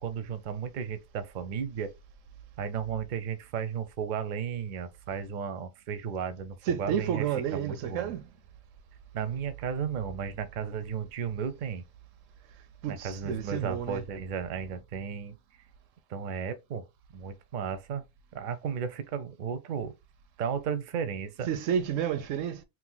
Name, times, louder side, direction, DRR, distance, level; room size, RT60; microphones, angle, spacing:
voice 1, 0.0-1.9 2.6-8.1 9.1-11.8 12.9-15.4 16.1-16.8 17.1-18.0 18.3-19.9 20.4-21.5, right 7 dB, 55° right, 0.6 m, -34 dB
voice 2, 6.7-8.2 12.8-14.0 21.5-22.6, right 9 dB, 90° right, 1.0 m, -30 dB
2.9 x 2.4 x 3.8 m
omnidirectional pair, 1.3 m